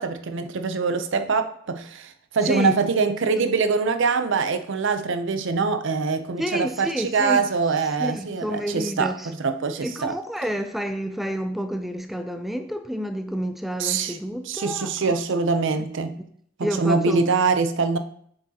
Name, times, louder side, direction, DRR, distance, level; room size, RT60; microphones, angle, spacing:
voice 1, 0.0-10.2 13.8-14.2 14.4-16.2 16.6-18.0, right 4 dB, 65° right, 0.6 m, -24 dB
voice 2, 6.4-7.4 8.0-9.3 9.8-15.2 16.6-17.2, equal, ahead, 0.3 m, -29 dB
7.7 x 6.2 x 2.8 m
head